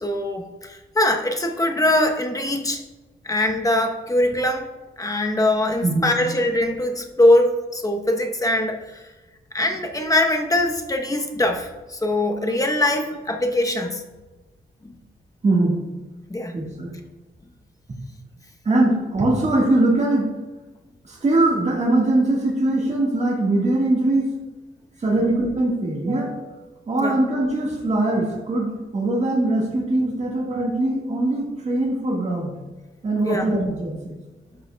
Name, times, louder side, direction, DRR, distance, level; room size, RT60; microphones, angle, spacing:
voice 1, 0.0-2.8 3.2-4.7 5.0-9.0 9.5-14.0 14.8-14.9 16.3-16.5 25.1-25.2 27.0-27.2 33.2-33.5, left 1 dB, 20° left, 4 dB, 0.8 m, -22 dB
voice 2, 5.8-6.2 15.4-15.8 16.5-16.9 18.6-20.3 21.0-24.3 25.0-26.5 26.9-32.6 33.0-34.1, right 2 dB, 40° right, -2 dB, 1.5 m, -21 dB
11.5 x 5.5 x 2.2 m, 1.2 s
cardioid pair, 100°, 18 cm